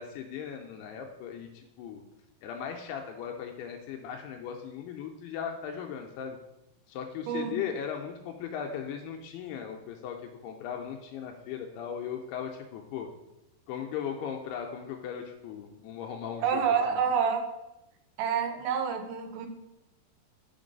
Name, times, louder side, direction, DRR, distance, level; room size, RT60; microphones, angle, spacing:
voice 1, 0.0-2.0 2.4-6.4 6.9-13.1 13.7-16.6 16.9-17.0, left 8 dB, 85° left, 3 dB, 2.4 m, -38 dB
voice 2, 7.3-7.6 16.4-17.5 18.2-19.5, right 6 dB, 85° right, 6 dB, 2.9 m, -28 dB
5.9 x 3.9 x 5.2 m, 0.91 s
omnidirectional pair, 5.0 m